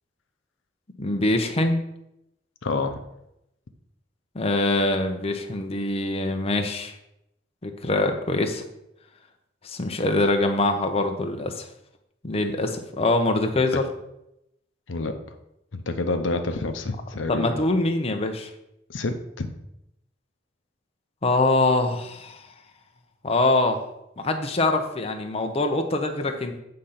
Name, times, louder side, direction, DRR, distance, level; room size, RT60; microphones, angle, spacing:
voice 1, 1.0-1.8 4.3-6.9 7.6-8.6 9.6-11.7 12.2-13.8 17.3-18.5 21.2-22.4 23.2-23.8 24.2-26.6, left 2 dB, 30° left, 5 dB, 0.7 m, -24 dB
voice 2, 2.6-3.0 13.7-13.8 14.9-15.1 15.7-17.6 18.9-19.5, left 3 dB, 80° left, 7 dB, 0.7 m, -28 dB
8.3 x 3.8 x 5.7 m, 0.83 s
head